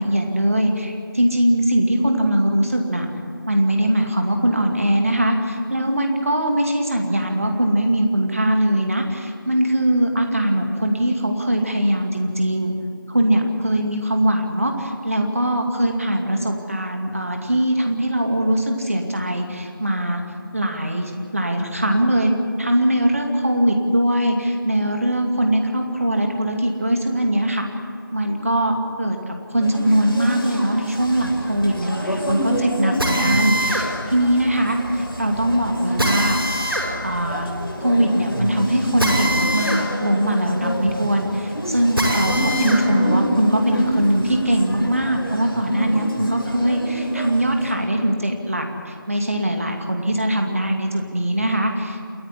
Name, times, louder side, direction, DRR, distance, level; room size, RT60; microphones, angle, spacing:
voice 1, 0.0-3.1 3.5-12.7 13.1-20.2 20.5-27.7 28.1-36.4 37.0-37.5 37.8-52.0, right 1 dB, 40° right, 3 dB, 2.4 m, -21 dB
sound 1, 29.6-47.7, equal, 80° left, 5.9 m, -27 dB
Drill, 33.0-42.8 43.3-44.9, equal, 85° right, 7.9 m, -26 dB
28.0 x 10.0 x 9.9 m, 2.3 s
figure-of-eight pair, 175°, 12 cm